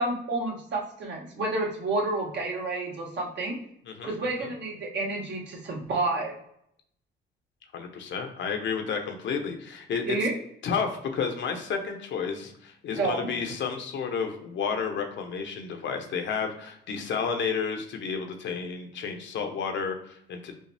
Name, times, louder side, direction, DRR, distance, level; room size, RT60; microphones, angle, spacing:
voice 1, 0.0-3.5 4.0-6.3 10.1-10.3 12.9-13.3, right 2 dB, 60° right, -2 dB, 1.4 m, -29 dB
voice 2, 3.9-4.5 7.7-10.3 10.6-20.5, left 6 dB, 70° left, 4 dB, 0.8 m, -31 dB
5.3 x 2.0 x 3.4 m, 0.70 s
cardioid pair, 90°, 20 cm